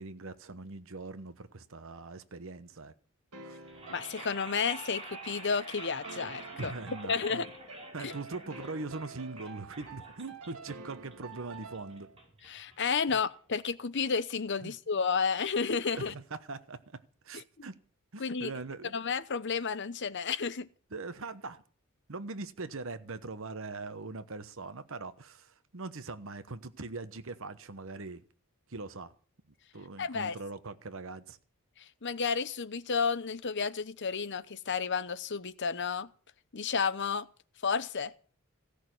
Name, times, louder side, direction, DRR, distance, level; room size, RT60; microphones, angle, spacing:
voice 1, 0.0-2.9 3.4-3.6 6.6-7.5 7.9-12.1 13.1-13.2 14.6-14.7 15.9-17.8 18.1-19.0 20.9-21.6 22.1-28.2 28.7-29.1 29.7-31.4, right 3 dB, 60° right, 1.0 m, -41 dB
sound 1, 3.3-12.2, right 4 dB, 90° right, 1.9 m, -49 dB
sound 2, 3.6-13.7, right 2 dB, 25° right, 5.8 m, -49 dB
voice 2, 3.9-6.7 7.1-7.5 8.0-8.1 12.5-16.1 18.2-18.5 18.9-20.7 30.0-30.4 31.8-36.1 36.5-37.3 37.6-38.1, left 5 dB, 55° left, 0.9 m, -31 dB
16.5 x 6.5 x 9.3 m
head